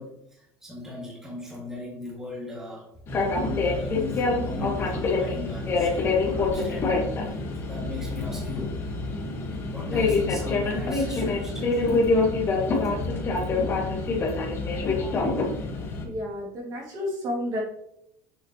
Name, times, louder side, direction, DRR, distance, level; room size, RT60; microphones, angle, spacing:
voice 1, 0.0-2.9 3.4-8.8 9.6-12.0 12.7-12.9, left 3 dB, 5° right, -5 dB, 2.1 m, -38 dB
sound 1, 3.1-16.0, left 3 dB, 30° left, 1.4 m, -26 dB
voice 2, 16.0-17.6, left 1 dB, 40° right, -3 dB, 2.6 m, -31 dB
7.0 x 5.8 x 3.0 m, 0.79 s
cardioid pair, 145°, 8 cm